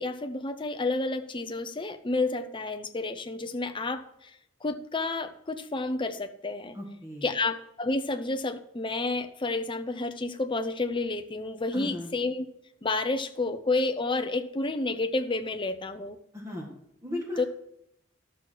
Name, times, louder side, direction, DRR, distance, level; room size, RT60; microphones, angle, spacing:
voice 1, 0.0-4.1 4.6-6.8 7.2-12.5 12.8-16.2 17.4-17.5, left 3 dB, 25° left, 7 dB, 0.7 m, -30 dB
voice 2, 6.7-7.3 11.7-12.1 16.3-16.7 17.0-17.5, left 1 dB, 15° right, -2 dB, 1.7 m, -36 dB
12.5 x 6.3 x 4.6 m, 0.76 s
head